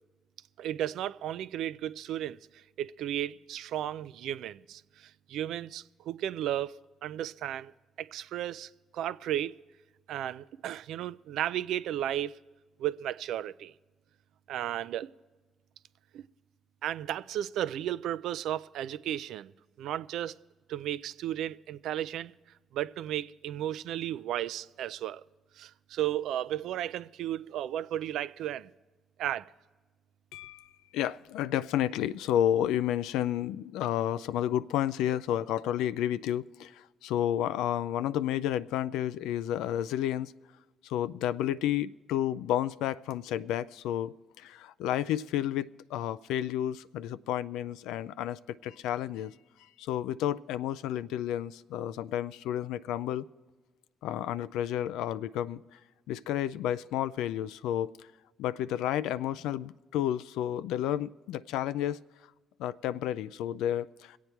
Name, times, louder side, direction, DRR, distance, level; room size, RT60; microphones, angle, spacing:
voice 1, 0.6-2.4 2.8-6.8 7.0-7.7 8.0-9.5 10.1-12.4 12.8-13.7 14.5-15.1 16.1-16.2 16.8-19.5 19.8-20.4 20.7-22.3 22.7-25.2 25.6-28.7 29.2-29.5, right 11 dB, 75° right, 0.4 m, -34 dB
voice 2, 30.3-40.3 40.8-49.3 49.8-53.2 54.0-55.8 56.1-58.1 58.4-62.0 62.6-64.2, left 11 dB, 80° left, 0.4 m, -31 dB
22.5 x 8.3 x 4.5 m
supercardioid pair, 65°, 0 cm